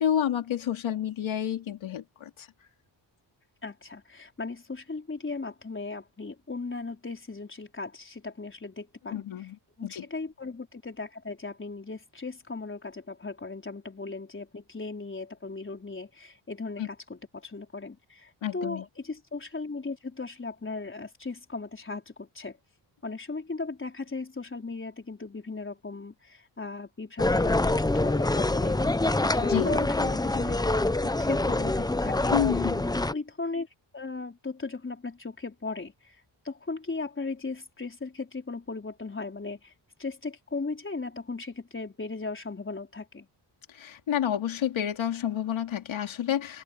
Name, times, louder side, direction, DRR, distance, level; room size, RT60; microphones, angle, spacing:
voice 1, 0.0-2.5 9.1-9.6 9.8-10.1 16.8-16.9 18.4-18.8 29.4-29.8 32.3-33.0 43.7-46.6, left 10 dB, 85° left, 2.8 m, -29 dB
voice 2, 3.6-9.5 9.8-22.6 23.0-32.3 32.9-33.7 33.9-36.2 36.4-39.7 40.0-43.3, left 3 dB, 25° left, 4.3 m, -37 dB
sound 1, 27.2-33.1, left 2 dB, 10° left, 0.7 m, -25 dB
cardioid pair, 100°, 46 cm